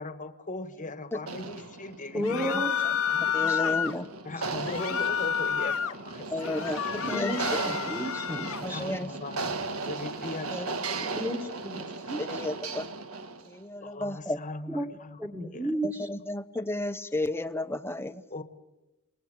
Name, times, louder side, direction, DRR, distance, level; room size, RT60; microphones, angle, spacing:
voice 1, 0.0-2.9 4.2-6.8 8.7-11.1 13.8-15.2 15.5-15.7 18.3-18.4, left 3 dB, 35° left, 11 dB, 1.4 m, -39 dB
sound 1, 1.2-13.6, right 3 dB, 75° right, 1.6 m, -36 dB
voice 2, 2.1-2.7 3.1-3.9 4.5-4.6 4.9-5.0 7.0-9.0 11.2-12.4 14.7-14.9 15.2-16.1, equal, 10° right, 1 dB, 1.8 m, -34 dB
sound 2, 2.2-3.9 4.6-6.0 6.4-8.7, left 8 dB, 70° left, 1.0 m, -30 dB
voice 3, 3.3-4.1 6.3-7.3 8.6-9.1 10.5-10.7 12.3-12.9 13.5-14.4 15.8-18.2, left 1 dB, 10° left, 10 dB, 1.0 m, -32 dB
28.0 x 20.0 x 7.7 m, 0.98 s
head